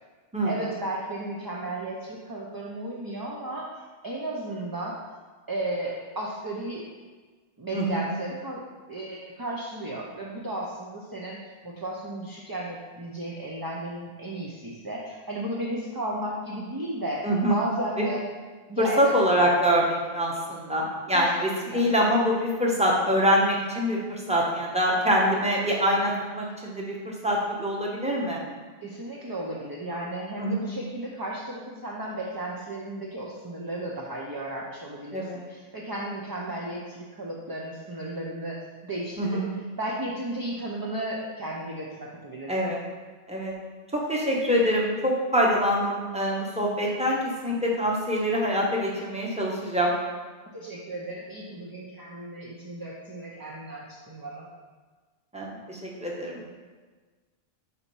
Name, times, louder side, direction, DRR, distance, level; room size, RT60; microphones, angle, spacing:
voice 1, 0.4-5.0 5.5-6.8 7.6-8.6 8.9-18.2 18.7-19.1 21.1-21.9 28.8-39.4 39.8-42.5 50.5-54.5, right 1 dB, 30° right, -4 dB, 0.4 m, -34 dB
voice 2, 17.2-17.6 18.8-28.4 30.4-30.6 35.1-35.4 39.2-39.4 42.5-42.8 43.3-43.5 43.9-49.9 55.3-56.4, equal, 5° right, -3 dB, 0.8 m, -25 dB
4.4 x 4.1 x 5.3 m, 1.4 s
omnidirectional pair, 1.1 m